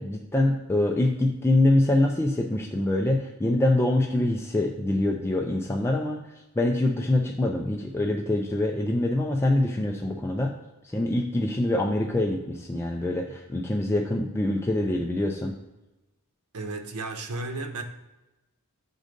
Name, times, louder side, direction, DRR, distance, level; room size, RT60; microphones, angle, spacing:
voice 1, 0.0-6.2 6.6-10.5 10.8-15.5, left 1 dB, 10° left, 1 dB, 0.4 m, -24 dB
voice 2, 16.5-17.8, right 3 dB, 85° right, 5 dB, 0.8 m, -33 dB
6.2 x 3.9 x 5.1 m, 1.0 s
head